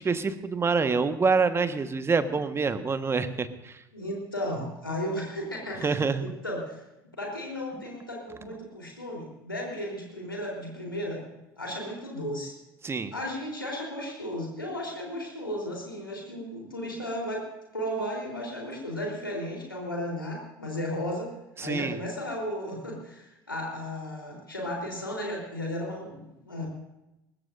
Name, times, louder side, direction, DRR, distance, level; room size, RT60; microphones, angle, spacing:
voice 1, 0.0-3.8 5.8-6.2 12.8-13.1 21.6-22.0, right 4 dB, 20° right, 10 dB, 1.4 m, -26 dB
voice 2, 3.9-5.9 6.2-6.8 7.2-11.3 11.6-12.5 13.1-17.5 17.7-21.3 21.6-26.7, equal, 90° left, -2 dB, 3.7 m, -34 dB
23.0 x 20.5 x 2.6 m, 0.94 s
figure-of-eight pair, 65°, 11 cm